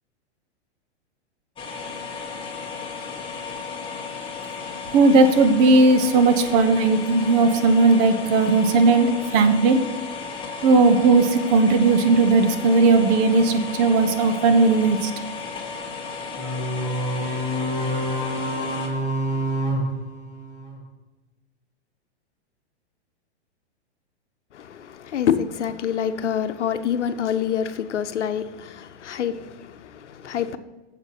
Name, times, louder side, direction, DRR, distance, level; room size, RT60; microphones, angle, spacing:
sound 1, 1.6-18.9, left 5 dB, 15° left, 1.8 m, -34 dB
voice 1, 4.9-9.8 10.6-15.1, right 3 dB, 40° right, 1.1 m, -17 dB
sound 2, 16.4-20.8, equal, 20° right, 2.0 m, -27 dB
voice 2, 24.5-30.6, left 8 dB, 90° left, 0.9 m, -26 dB
8.0 x 7.4 x 6.0 m
hypercardioid pair, 130°, 34 cm